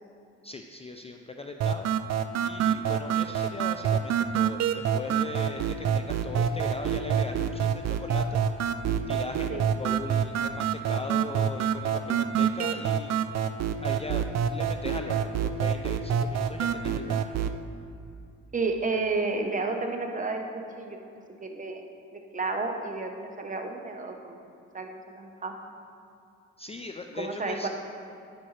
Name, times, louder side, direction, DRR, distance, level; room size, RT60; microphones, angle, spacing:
voice 1, 0.4-1.9 2.4-8.4 9.1-13.2 13.8-17.3 26.6-27.7, left 3 dB, 20° left, 4 dB, 0.4 m, -39 dB
sound 1, 1.6-17.6, right 8 dB, 60° right, 0.5 m, -27 dB
voice 2, 18.5-21.0 21.4-21.8 22.1-24.4 24.7-25.5 27.2-27.7, right 3 dB, 25° right, 3 dB, 0.9 m, -31 dB
10.0 x 8.5 x 3.2 m, 2.5 s
cardioid pair, 90°, 30 cm